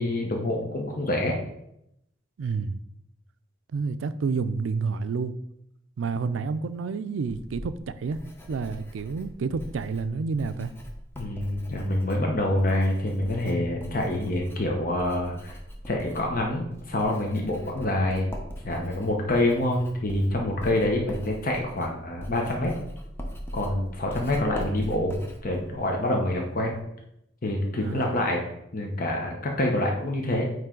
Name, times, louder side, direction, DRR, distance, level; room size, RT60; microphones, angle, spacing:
voice 1, 0.0-1.3 6.2-6.3 11.2-15.5 15.9-18.3 18.6-22.7 23.5-26.8 27.4-28.4 28.7-30.4, left 1 dB, 45° left, 1 dB, 0.8 m, -26 dB
voice 2, 2.4-2.8 3.7-5.3 6.0-8.2 8.5-10.7 27.8-28.2, right 4 dB, 85° right, 13 dB, 0.4 m, -29 dB
Writing, 7.3-26.8, equal, 10° left, 0.8 m, -42 dB
9.1 x 3.2 x 3.8 m, 0.80 s
head